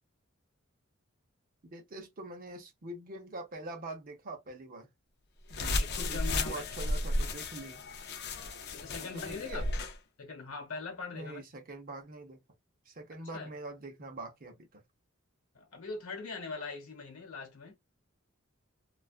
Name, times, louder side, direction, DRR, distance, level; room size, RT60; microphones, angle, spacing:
voice 1, 1.6-4.9 5.5-5.8 6.1-7.8 9.1-9.6 11.1-12.4 12.9-14.8, right 2 dB, 45° right, 0.7 m, -44 dB
sound 1, 5.5-10.0, left 2 dB, 50° left, 0.4 m, -34 dB
voice 2, 5.6-6.6 8.7-9.6 10.2-11.4 13.3-13.5 15.5-17.8, left 4 dB, 85° left, 1.0 m, -42 dB
2.3 x 2.2 x 2.4 m
head